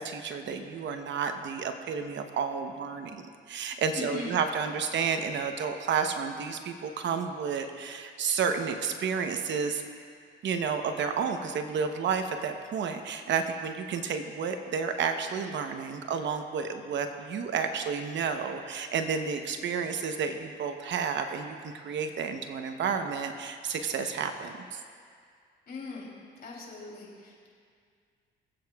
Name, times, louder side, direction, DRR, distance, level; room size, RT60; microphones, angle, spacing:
voice 1, 0.0-3.2 3.5-9.8 10.4-24.8, right 6 dB, 65° right, 6 dB, 0.9 m, -31 dB
voice 2, 4.0-4.4 25.7-26.1 26.4-27.5, left 4 dB, 50° left, -3 dB, 3.1 m, -40 dB
23.0 x 8.6 x 2.3 m, 2.2 s
cardioid pair, 90°, 20 cm